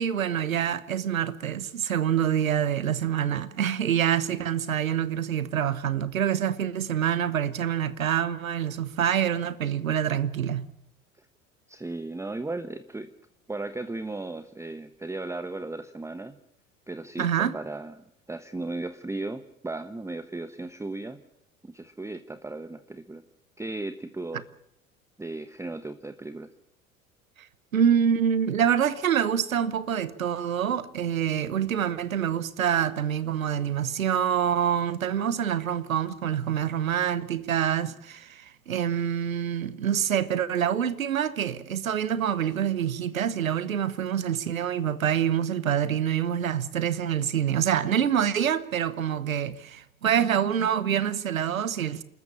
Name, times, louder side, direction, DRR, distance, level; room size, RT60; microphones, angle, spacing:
voice 1, 0.0-10.6 17.2-17.6 27.7-52.0, right 9 dB, 80° right, 1.1 m, -26 dB
voice 2, 11.7-13.1 13.5-16.4 16.9-21.2 21.6-23.2 23.6-24.4 25.2-26.5, right 2 dB, 5° right, 1.1 m, -36 dB
28.5 x 13.5 x 8.7 m
figure-of-eight pair, 70°, 40 cm